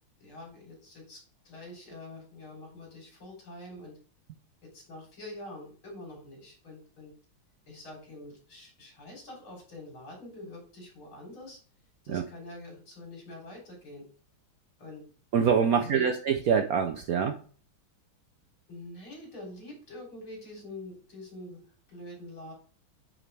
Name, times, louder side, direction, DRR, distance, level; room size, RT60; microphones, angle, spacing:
voice 1, 0.2-1.2 1.4-4.0 4.6-7.1 7.7-11.6 12.0-14.0 14.8-15.0 15.7-16.1 18.7-22.5, left 1 dB, 80° left, -2 dB, 4.4 m, -45 dB
voice 2, 15.3-17.4, right 7 dB, 70° right, 6 dB, 0.9 m, -25 dB
9.3 x 5.1 x 3.4 m, 0.41 s
omnidirectional pair, 2.2 m